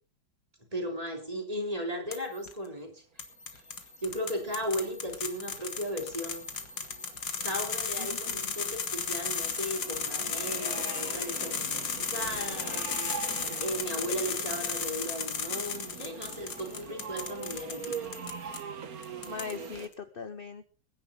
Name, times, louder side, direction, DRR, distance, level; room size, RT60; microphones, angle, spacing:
voice 1, 0.7-3.0 3.5-3.6 4.0-6.4 7.4-12.9 13.3-18.1, equal, 20° right, 3 dB, 3.2 m, -36 dB
sound 1, 2.1-2.5 3.2-18.6 19.0-19.8, left 6 dB, 85° left, 2.4 m, -35 dB
sound 2, 4.0-19.9, right 6 dB, 55° right, 1.8 m, -43 dB
voice 2, 8.0-8.5 19.2-20.6, left 6 dB, 40° left, 10 dB, 0.9 m, -40 dB
22.0 x 10.5 x 3.8 m, 0.35 s
omnidirectional pair, 1.9 m